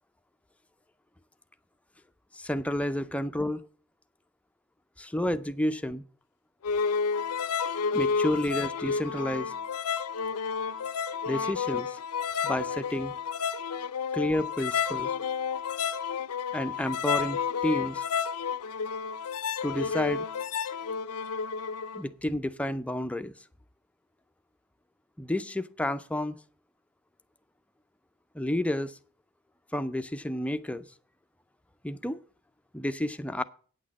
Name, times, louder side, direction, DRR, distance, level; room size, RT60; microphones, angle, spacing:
voice 1, 2.3-3.6 5.0-6.0 7.9-9.5 11.3-12.0 12.4-13.1 14.1-15.1 16.5-18.1 19.6-20.2 21.9-23.3 25.2-26.4 28.3-29.0 29.7-30.9 31.8-32.2 32.7-33.4, left 1 dB, 5° left, 0.4 m, -30 dB
sound 1, 6.6-22.0, left 6 dB, 85° left, 0.5 m, -31 dB
9.2 x 6.2 x 7.4 m
head